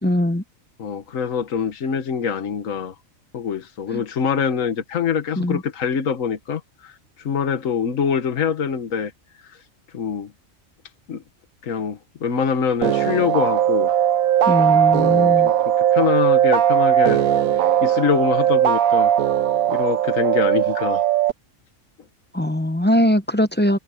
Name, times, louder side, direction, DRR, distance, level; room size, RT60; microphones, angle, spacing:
voice 1, 0.0-0.4 3.9-4.0 5.4-5.6 14.5-15.5 22.3-23.8, left 1 dB, 10° left, 0.6 m, -20 dB
voice 2, 0.8-2.9 3.3-6.9 7.2-9.1 9.9-10.3 11.1-11.2 11.6-13.9 15.1-17.2 17.5-19.1 19.7-21.0, left 7 dB, 70° left, 1.6 m, -24 dB
sound 1, 12.8-21.3, right 10 dB, 85° right, 1.2 m, -18 dB
omnidirectional pair, 1.4 m